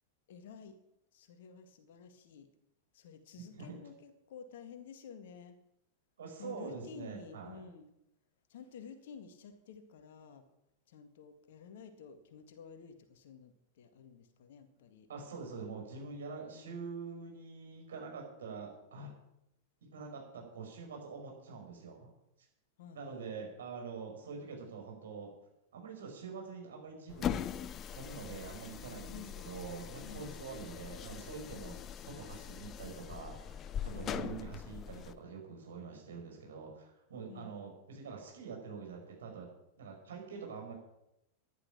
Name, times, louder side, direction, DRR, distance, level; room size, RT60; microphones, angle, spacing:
voice 1, 0.3-0.8 1.1-2.5 2.9-5.6 6.4-7.9 8.5-10.4 10.9-15.1 16.5-16.8 22.8-23.3 29.1-29.4 30.0-30.4 31.5-31.8 33.9-34.4 37.3-37.6, left 6 dB, 55° left, 9 dB, 1.9 m, -52 dB
voice 2, 6.2-7.6 15.1-19.1 19.9-22.1 22.9-25.3 25.7-27.7 27.9-39.5 39.8-40.7, right 5 dB, 65° right, 1 dB, 5.5 m, -45 dB
sound 1, 27.1-35.2, left 9 dB, 30° left, 0.6 m, -41 dB
13.5 x 11.0 x 6.0 m, 0.84 s
figure-of-eight pair, 90°, 0 cm